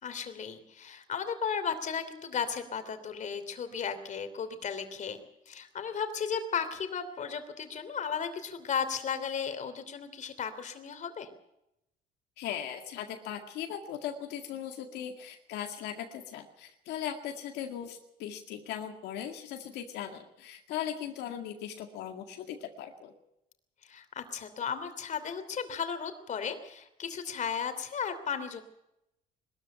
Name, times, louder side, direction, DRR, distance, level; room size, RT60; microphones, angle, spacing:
voice 1, 0.0-11.3 23.8-28.6, left 7 dB, 45° left, 9 dB, 3.0 m, -35 dB
voice 2, 12.4-23.1, left 9 dB, 85° left, 4 dB, 2.1 m, -38 dB
21.5 x 13.5 x 9.0 m, 0.85 s
cardioid pair, 110°, 17 cm